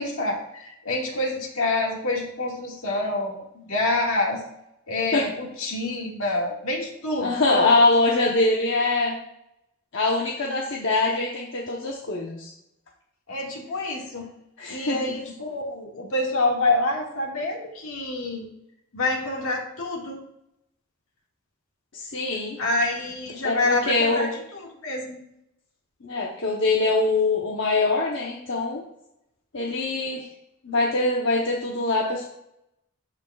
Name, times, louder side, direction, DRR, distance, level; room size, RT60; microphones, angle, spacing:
voice 1, 0.0-4.4 4.9-7.7 13.3-14.3 14.7-18.5 18.9-20.2 22.6-25.2, left 2 dB, 75° left, -1 dB, 2.0 m, -27 dB
voice 2, 7.2-9.2 9.9-12.5 14.6-15.0 21.9-22.6 23.4-24.3 26.0-28.8 29.5-30.2 30.6-32.2, left 3 dB, 55° left, -2 dB, 1.0 m, -23 dB
13.5 x 5.1 x 2.4 m, 0.81 s
head